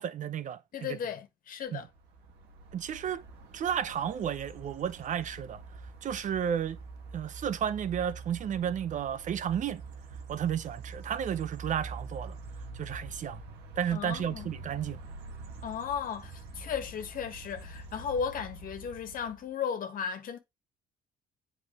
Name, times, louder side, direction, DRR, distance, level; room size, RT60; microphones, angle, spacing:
voice 1, 0.0-0.9 1.7-1.8 2.7-3.2 3.5-5.6 6.0-6.8 7.1-9.8 10.3-12.4 12.7-13.4 13.8-15.0, right 9 dB, 50° right, 0.8 m, -32 dB
voice 2, 0.7-1.9 13.9-14.5 15.6-20.4, left 7 dB, 55° left, 1.6 m, -35 dB
sound 1, 1.9-19.5, right 3 dB, 85° right, 1.9 m, -45 dB
8.3 x 4.7 x 3.1 m
cardioid pair, 110°, 17 cm